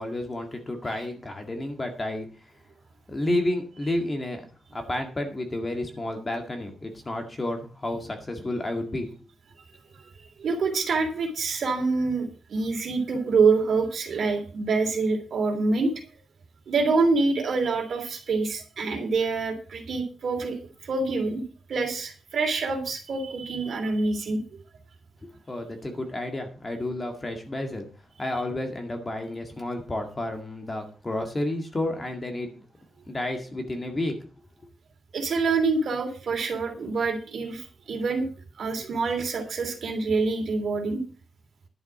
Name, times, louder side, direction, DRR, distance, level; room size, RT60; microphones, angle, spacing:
voice 1, 0.0-2.3 3.1-4.4 4.7-9.1 25.5-27.9 28.2-32.5 33.1-34.1, left 1 dB, 20° left, 5 dB, 2.0 m, -31 dB
voice 2, 10.0-15.9 16.7-20.6 20.8-21.4 21.7-24.4 35.1-38.3 38.6-41.0, right 4 dB, 55° right, 4 dB, 3.3 m, -26 dB
11.0 x 7.3 x 6.1 m, 0.37 s
wide cardioid pair, 165°, 0 cm